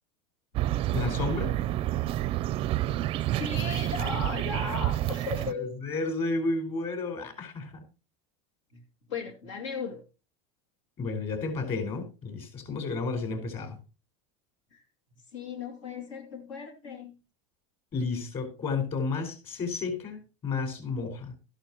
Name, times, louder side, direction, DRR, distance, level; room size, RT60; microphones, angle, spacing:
sound 1, 0.5-5.5, right 14 dB, 35° right, 0.4 m, -29 dB
voice 1, 0.9-1.5 5.5-7.8 11.0-13.8 17.9-21.4, left 3 dB, 35° left, 7 dB, 4.6 m, -32 dB
voice 2, 3.4-5.7 8.7-8.8 9.1-10.0 14.7-14.8 15.3-17.2, left 5 dB, 85° left, 4 dB, 2.6 m, -36 dB
13.5 x 11.5 x 3.0 m, 0.31 s
supercardioid pair, 140°, 16 cm